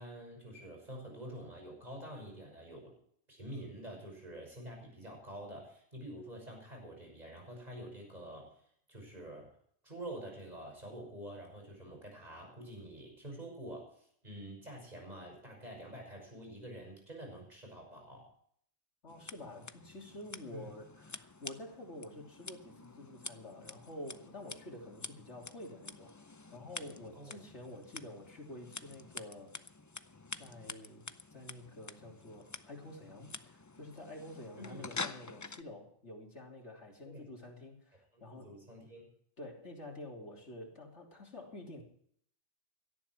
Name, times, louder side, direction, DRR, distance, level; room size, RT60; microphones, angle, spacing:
voice 1, 0.0-2.9 3.3-8.5 8.9-9.5 9.8-18.3 20.5-20.7 27.2-27.4 34.6-34.9 37.0-37.3 38.1-39.1, right 1 dB, 35° right, 1 dB, 6.1 m, -47 dB
voice 2, 19.0-26.2 26.5-29.5 30.4-38.5 39.4-41.8, left 1 dB, 70° left, 0 dB, 3.4 m, -49 dB
Scissors, 19.1-35.6, left 3 dB, 30° left, 0.3 m, -48 dB
17.5 x 12.5 x 4.5 m, 0.64 s
omnidirectional pair, 1.2 m